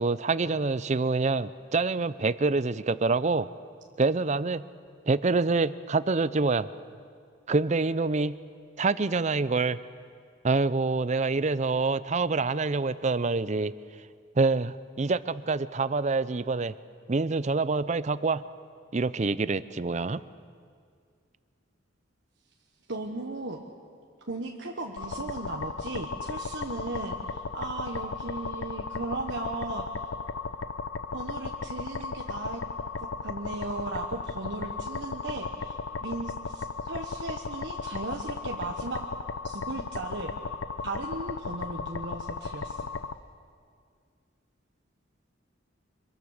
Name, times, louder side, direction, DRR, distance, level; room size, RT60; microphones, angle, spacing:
voice 1, 0.0-3.5 4.0-4.6 5.1-6.7 7.5-8.4 8.8-9.8 10.4-13.7 14.4-16.7 17.1-18.4 18.9-20.2, right 3 dB, 35° right, 16 dB, 0.5 m, -26 dB
voice 2, 22.9-23.6 24.3-30.1 31.1-32.6 33.0-39.0 39.4-40.3 40.8-42.9, right 2 dB, 60° right, 1 dB, 1.3 m, -36 dB
sound 1, 25.0-43.1, left 4 dB, 75° left, 0.8 m, -36 dB
25.5 x 22.5 x 6.6 m, 2.1 s
head